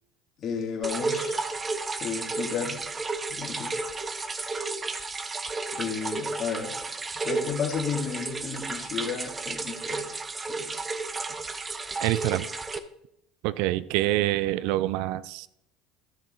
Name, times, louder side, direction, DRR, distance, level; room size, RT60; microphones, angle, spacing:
voice 1, 0.4-1.5 2.0-2.8 3.3-3.7 5.8-6.7 7.2-10.0 10.5-10.7, left 6 dB, 45° left, 1 dB, 2.8 m, -32 dB
sound 1, 0.8-12.8, right 3 dB, 25° right, 0.8 m, -32 dB
voice 2, 12.0-12.5 13.4-15.5, right 16 dB, 65° right, 18 dB, 0.4 m, -26 dB
13.5 x 6.5 x 4.0 m, 0.79 s
hypercardioid pair, 75°, 0 cm